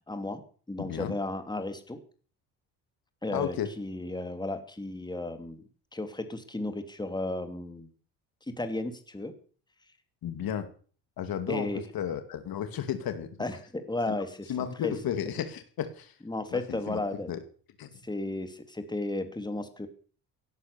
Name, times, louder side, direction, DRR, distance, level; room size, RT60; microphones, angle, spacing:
voice 1, 0.1-0.4 0.7-2.0 3.2-5.6 5.9-7.9 8.5-9.3 11.5-11.8 13.4-14.5 14.8-14.9 16.2-17.3 18.0-19.9, left 2 dB, 10° left, 8 dB, 3.0 m, -34 dB
voice 2, 0.8-1.2 3.3-3.7 10.2-10.7 11.2-13.3 14.1-14.2 14.5-16.2 16.5-17.0 17.3-17.4 17.8-18.0, left 9 dB, 65° left, 9 dB, 2.3 m, -33 dB
17.5 x 11.5 x 7.0 m, 0.44 s
supercardioid pair, 80°, 38 cm